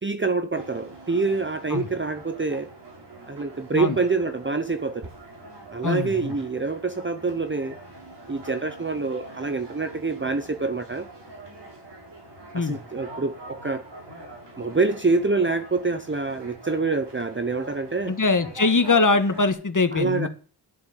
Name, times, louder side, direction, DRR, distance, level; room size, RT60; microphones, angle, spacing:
voice 1, 0.0-2.7 3.3-5.1 5.7-7.8 8.3-11.1 12.5-13.8 14.6-18.2 19.9-20.3, right 3 dB, 30° right, 10 dB, 0.8 m, -26 dB
sound 1, 0.5-19.5, right 2 dB, 80° right, 4.6 m, -44 dB
voice 2, 5.8-6.3 12.5-12.8 18.0-20.3, left 3 dB, 50° left, 10 dB, 1.6 m, -22 dB
11.0 x 7.3 x 9.1 m, 0.41 s
wide cardioid pair, 90°, 41 cm